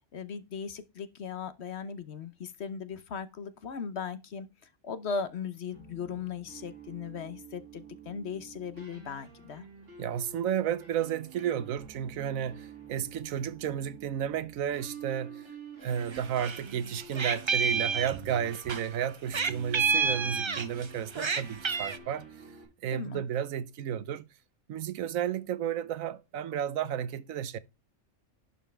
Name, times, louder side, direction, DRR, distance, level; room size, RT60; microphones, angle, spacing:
voice 1, 0.0-4.5 4.8-9.7 22.9-23.2, left 6 dB, 55° left, 1.1 m, -38 dB
sound 1, 5.7-22.6, right 5 dB, 60° right, 4.4 m, -48 dB
voice 2, 10.0-15.5 15.8-22.3 22.8-24.2 24.7-27.6, right 9 dB, 85° right, 1.2 m, -32 dB
Meow, 16.0-16.6 16.9-18.8 19.3-20.9 21.1-22.0, right 5 dB, 40° right, 0.4 m, -29 dB
11.0 x 5.4 x 3.3 m
omnidirectional pair, 1.4 m